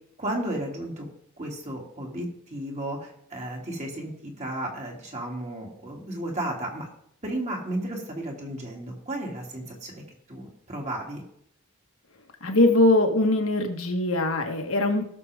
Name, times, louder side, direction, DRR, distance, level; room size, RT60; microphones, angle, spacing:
voice 1, 0.2-1.1 1.4-6.9 7.2-10.0 10.3-11.2, right 1 dB, 35° right, -1 dB, 2.9 m, -33 dB
voice 2, 12.4-15.1, left 2 dB, 75° left, 4 dB, 1.7 m, -22 dB
17.5 x 6.9 x 3.6 m, 0.71 s
head